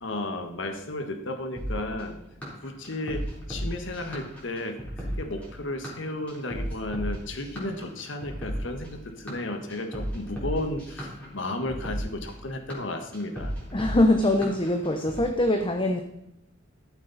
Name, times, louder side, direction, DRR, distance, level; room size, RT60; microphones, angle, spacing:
voice 1, 0.0-2.2 2.6-13.5, left 1 dB, 70° left, 6 dB, 1.4 m, -34 dB
sound 1, 1.6-15.2, equal, 5° left, 3.7 m, -35 dB
voice 2, 13.7-16.0, left 1 dB, 25° left, 4 dB, 0.8 m, -23 dB
13.0 x 7.4 x 4.1 m, 0.84 s
head